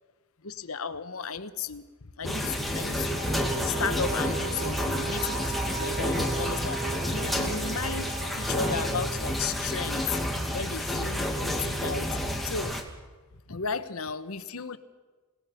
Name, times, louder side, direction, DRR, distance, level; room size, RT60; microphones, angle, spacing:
voice 1, 0.4-1.8 2.2-3.3 3.6-10.2 10.5-12.2 12.4-12.8 13.5-14.8, left 5 dB, 70° left, 11 dB, 1.1 m, -34 dB
sound 1, 2.2-12.8, equal, ahead, 2.2 m, -30 dB
sound 2, 3.1-10.0, right 6 dB, 30° right, 1.2 m, -38 dB
27.5 x 18.5 x 5.8 m, 1.3 s
head